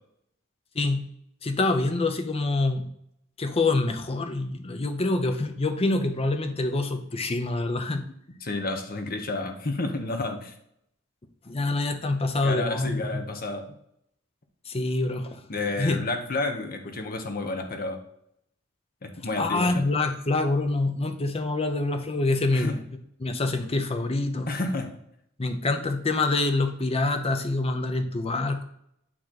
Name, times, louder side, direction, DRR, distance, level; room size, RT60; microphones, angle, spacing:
voice 1, 0.7-1.1 1.4-2.9 3.4-8.0 11.5-13.2 14.7-15.4 15.8-16.1 19.4-22.8 23.2-24.5 25.4-28.6, left 2 dB, 30° left, 7 dB, 0.7 m, -26 dB
voice 2, 8.4-10.5 12.4-13.7 15.5-18.0 19.0-19.8 22.5-22.8 24.5-25.0, left 2 dB, 45° left, 5 dB, 1.0 m, -30 dB
8.7 x 3.1 x 3.9 m, 0.73 s
head